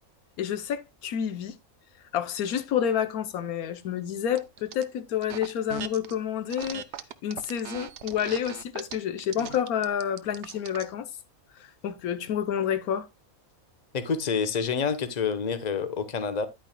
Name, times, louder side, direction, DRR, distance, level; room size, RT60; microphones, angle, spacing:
voice 1, 0.4-1.6 2.1-6.8 7.2-11.1 11.6-13.1, left 9 dB, 90° left, 1.3 m, -29 dB
sound 1, 4.3-4.8 5.2-6.1 6.5-10.9, right 9 dB, 60° right, 0.9 m, -39 dB
voice 2, 13.9-16.5, left 5 dB, 35° left, 1.0 m, -28 dB
10.5 x 9.0 x 2.2 m
omnidirectional pair, 1.5 m